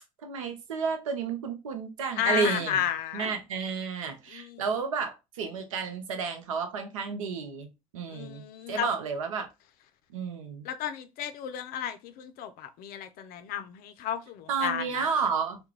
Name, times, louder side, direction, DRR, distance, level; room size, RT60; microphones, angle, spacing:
voice 1, 0.2-2.8 3.1-7.7 7.9-9.5 10.1-10.7 14.5-15.6, right 5 dB, 90° right, 0.5 m, -31 dB
voice 2, 2.2-3.3 4.3-4.6 8.1-8.9 10.6-15.1, left 10 dB, 60° left, 0.4 m, -33 dB
2.3 x 2.1 x 3.0 m
hypercardioid pair, 65°, 17 cm